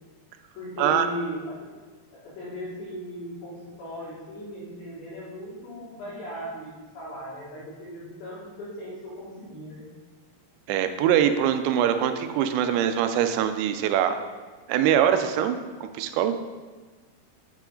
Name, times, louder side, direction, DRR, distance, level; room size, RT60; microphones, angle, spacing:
voice 1, 0.5-1.7 2.1-9.8, left 1 dB, 90° left, -8 dB, 5.5 m, -37 dB
voice 2, 10.7-14.2 14.7-16.3, right 9 dB, 85° right, 8 dB, 2.8 m, -23 dB
8.2 x 8.1 x 3.8 m, 1.4 s
omnidirectional pair, 5.0 m